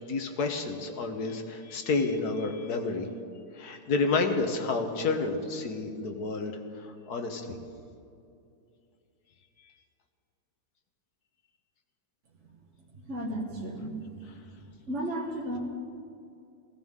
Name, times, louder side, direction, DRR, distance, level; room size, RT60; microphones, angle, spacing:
voice 1, 0.0-3.1 3.5-6.5 6.8-7.6, left 3 dB, 65° left, 5 dB, 1.7 m, -30 dB
voice 2, 12.9-14.4 14.9-15.6, right 1 dB, 45° right, -3 dB, 1.7 m, -34 dB
18.5 x 16.0 x 3.7 m, 2.5 s
omnidirectional pair, 1.8 m